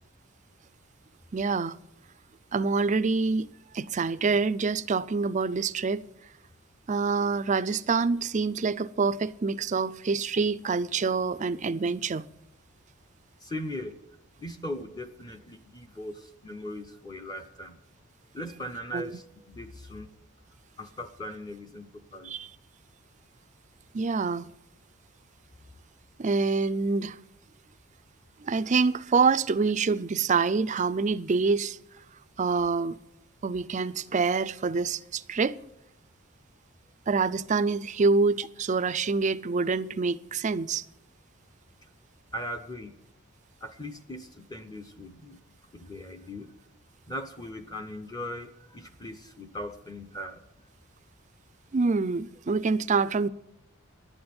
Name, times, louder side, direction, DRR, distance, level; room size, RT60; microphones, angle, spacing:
voice 1, 1.3-1.8 2.5-3.5 3.7-6.1 6.9-12.3 18.9-19.2 22.2-22.5 23.9-24.5 26.2-27.2 28.4-31.8 32.4-33.0 33.4-35.6 37.1-40.8 51.7-53.3, right 4 dB, 35° right, 0.4 m, -26 dB
voice 2, 13.4-14.0 14.4-17.8 18.3-20.1 20.8-22.4 42.3-43.0 43.6-45.4 45.7-46.6 47.1-50.4, left 1 dB, 20° left, 0.7 m, -39 dB
11.5 x 8.7 x 9.4 m
head